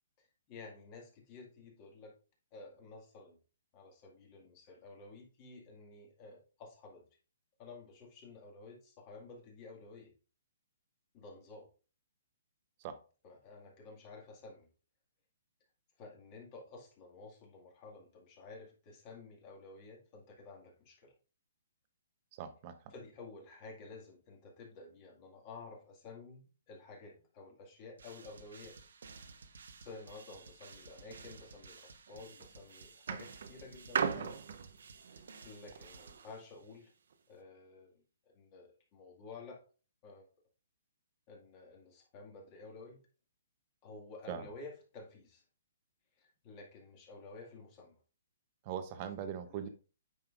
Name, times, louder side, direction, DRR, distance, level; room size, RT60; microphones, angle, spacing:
voice 1, 0.2-2.2 2.5-3.4 3.7-7.1 7.6-10.1 11.1-11.7 13.2-14.7 16.0-21.1 22.9-28.8 29.8-34.4 35.1-36.9 37.3-39.6 40.0-40.3 41.3-43.0 43.8-45.4 46.2-48.0 49.0-49.1 49.5-49.7, left 3 dB, 25° left, 0 dB, 2.0 m, -52 dB
voice 2, 22.3-22.7 44.3-44.5 48.6-49.7, right 8 dB, 30° right, 9 dB, 0.8 m, -40 dB
sound 1, 28.0-36.8, right 4 dB, 80° right, 1.1 m, -55 dB
sound 2, 32.1-32.4 33.1-36.3 37.1-37.2, right 7 dB, 60° right, 0.7 m, -38 dB
9.1 x 5.5 x 2.5 m, 0.37 s
hypercardioid pair, 165°, 0 cm